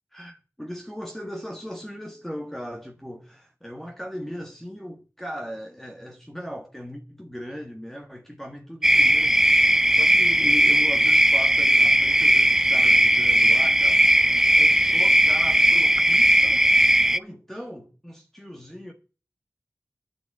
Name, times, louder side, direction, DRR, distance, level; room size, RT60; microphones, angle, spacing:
voice 1, 0.1-9.5 9.9-14.0 14.5-16.7 17.1-18.9, equal, 5° left, 1.6 m, -38 dB
sound 1, 8.8-17.2, right 1 dB, 10° right, 0.4 m, -18 dB
9.4 x 6.6 x 7.7 m
wide cardioid pair, 75°, 5 cm